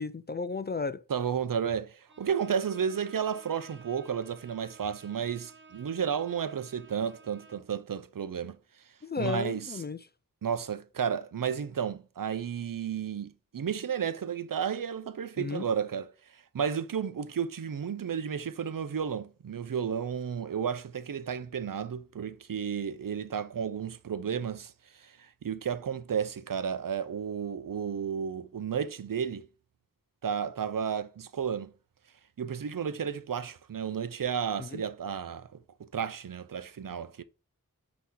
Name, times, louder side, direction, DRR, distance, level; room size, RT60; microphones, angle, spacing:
voice 1, 0.0-1.0 9.0-10.1 15.4-15.6 34.6-34.8, left 4 dB, 30° left, 0.4 m, -34 dB
voice 2, 1.1-8.6 9.2-9.7 10.4-16.1 16.5-24.7 25.0-29.5 30.2-31.7 32.4-35.5 35.8-37.2, right 7 dB, 65° right, 0.6 m, -32 dB
Bowed string instrument, 2.1-7.8, right 4 dB, 35° right, 0.8 m, -54 dB
8.4 x 3.0 x 3.8 m
cardioid pair, 40°, 35 cm